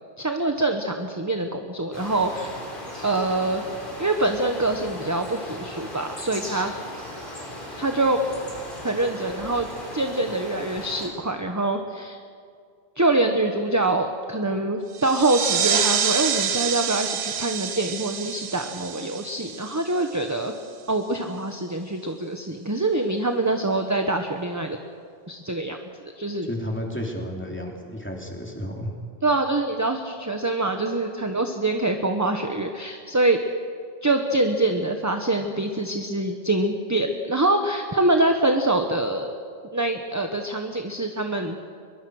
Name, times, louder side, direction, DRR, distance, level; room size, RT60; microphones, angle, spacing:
voice 1, 0.2-2.6 3.0-3.6 4.0-6.7 7.8-8.2 8.8-9.7 9.9-12.2 13.0-20.5 20.9-24.8 25.3-25.8 26.0-26.5 29.2-33.4 34.0-39.3 39.7-41.6, right 2 dB, 15° right, 5 dB, 1.0 m, -25 dB
sound 1, 1.9-11.1, left 1 dB, 55° left, 4.8 m, -37 dB
sound 2, 14.9-20.3, right 7 dB, 85° right, 1.2 m, -27 dB
voice 2, 26.5-28.9, equal, 10° left, 0 dB, 3.1 m, -32 dB
22.5 x 22.0 x 6.4 m, 2.2 s
omnidirectional pair, 1.0 m